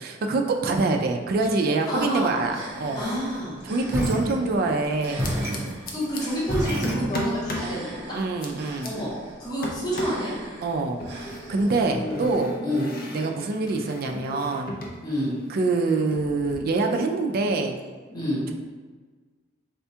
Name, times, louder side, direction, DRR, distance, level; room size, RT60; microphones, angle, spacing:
voice 1, 0.0-3.0 3.6-5.4 8.1-8.9 10.6-12.6 13.1-14.8 15.5-17.7, right 3 dB, 50° right, 3 dB, 0.3 m, -25 dB
sound 1, 0.6-1.1 1.4-4.0 5.0-6.2 6.8-7.7 8.2-8.9 9.6-10.3 11.0-15.0 15.3-16.6, equal, 50° left, 0.5 m, -36 dB
voice 2, 1.9-2.3 3.0-3.6 5.9-8.2 8.8-9.1 9.4-10.3 11.5-12.3 12.6-12.9 15.0-15.4 18.1-18.4, equal, 20° left, -7 dB, 0.9 m, -29 dB
sound 2, 2.4-12.4, right 1 dB, 70° right, 0.7 m, -43 dB
sound 3, 3.9-4.8 5.2-7.5, right 1 dB, 15° right, 0.7 m, -29 dB
4.2 x 2.2 x 2.7 m, 1.4 s
head